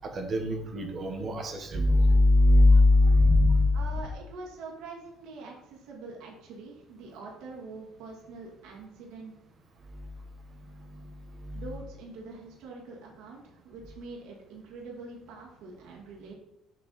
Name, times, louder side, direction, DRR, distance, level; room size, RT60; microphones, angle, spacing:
voice 1, 0.1-3.8 11.4-11.6, left 2 dB, 35° right, 4 dB, 1.3 m, -21 dB
voice 2, 3.7-9.3 11.5-16.4, right 3 dB, 75° right, -2 dB, 2.0 m, -44 dB
7.1 x 4.8 x 4.1 m, 0.82 s
cardioid pair, 150°, 0 cm